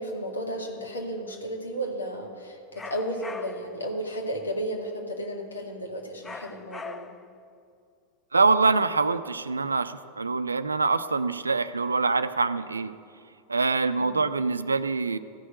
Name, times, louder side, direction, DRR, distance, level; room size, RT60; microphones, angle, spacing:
voice 1, 0.0-7.1 13.9-14.2, right 1 dB, 75° left, 0 dB, 2.0 m, -33 dB
sound 1, 2.8-3.8 6.2-7.3, left 4 dB, 15° left, 0.6 m, -41 dB
voice 2, 8.3-12.9 13.5-15.2, right 4 dB, 75° right, 12 dB, 0.5 m, -24 dB
14.0 x 6.4 x 9.3 m, 2.4 s
figure-of-eight pair, 90°, 0 cm